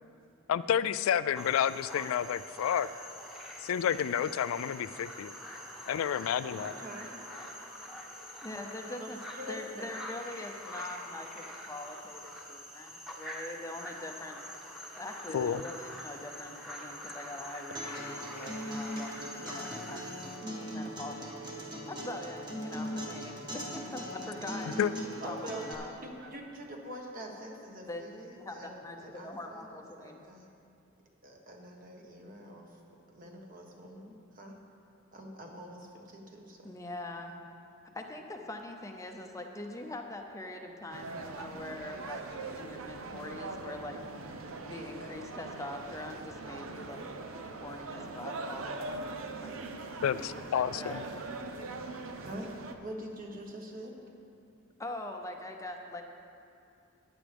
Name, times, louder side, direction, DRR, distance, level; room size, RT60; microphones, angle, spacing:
voice 1, 0.5-2.9 3.6-5.3 5.9-6.7 15.3-15.6 24.8-24.9 50.0-51.0, left 9 dB, 90° left, 15 dB, 0.3 m, -30 dB
sound 1, 1.3-20.4, equal, ahead, 1.1 m, -45 dB
voice 2, 6.5-7.2 8.8-10.0 25.0-30.5 31.2-32.8 33.1-34.6 35.1-36.7 52.2-52.5 52.8-53.9, equal, 40° right, 1 dB, 1.4 m, -45 dB
voice 3, 8.4-9.2 9.5-14.4 14.9-20.1 20.6-24.7 25.2-25.9 27.8-28.0 28.4-30.2 36.6-37.3 37.9-42.2 42.5-44.0 44.6-47.1 47.6-49.6 50.1-51.0 54.8-56.0, left 2 dB, 15° left, 3 dB, 0.6 m, -43 dB
Acoustic guitar, 17.7-25.7, equal, 20° right, 1.4 m, -40 dB
sound 2, 40.9-52.7, right 3 dB, 85° right, 0.7 m, -41 dB
15.0 x 9.9 x 3.5 m, 2.6 s
head